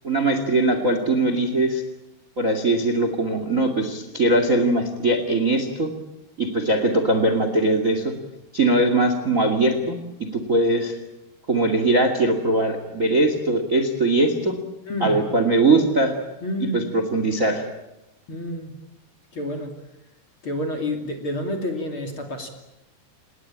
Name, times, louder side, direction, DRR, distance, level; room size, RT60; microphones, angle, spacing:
voice 1, 0.0-1.8 2.4-5.9 6.4-8.1 8.5-11.0 11.5-14.6 15.0-16.1 16.7-17.7, right 2 dB, 25° right, 8 dB, 2.0 m, -21 dB
voice 2, 14.8-15.2 16.4-16.8 18.3-18.8 19.3-19.7 20.4-22.5, left 1 dB, 35° left, 4 dB, 3.3 m, -29 dB
28.5 x 20.0 x 8.9 m, 0.96 s
omnidirectional pair, 4.7 m